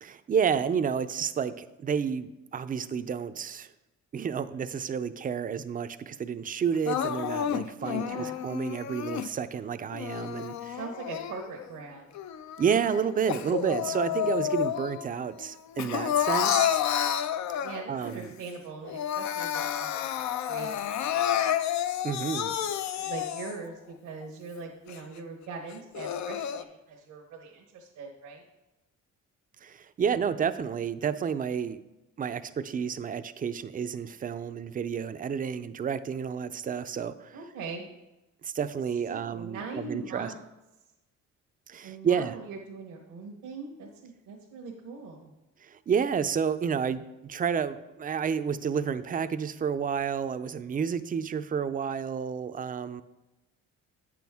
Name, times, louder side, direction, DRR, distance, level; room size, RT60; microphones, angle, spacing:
voice 1, 0.0-3.7 4.1-10.8 12.6-16.8 17.9-18.3 22.0-22.6 29.6-31.8 32.2-37.4 38.4-40.3 41.7-42.4 45.6-53.0, right 7 dB, 30° right, 11 dB, 0.4 m, -30 dB
Crying sobbing, 6.9-9.3 9.9-11.7 12.1-15.1 15.4-18.0 18.5-18.6 18.8-23.7 24.2-24.3 24.9-25.0 25.7-26.6, left 10 dB, 65° left, 0.5 m, -30 dB
voice 2, 7.8-8.4 10.7-12.1 13.9-14.2 17.6-20.2 20.5-21.2 23.0-28.4 37.3-37.9 39.1-40.4 41.8-45.3, right 4 dB, 85° right, -1 dB, 1.1 m, -41 dB
8.7 x 6.1 x 3.6 m, 1.0 s
cardioid pair, 90°, 30 cm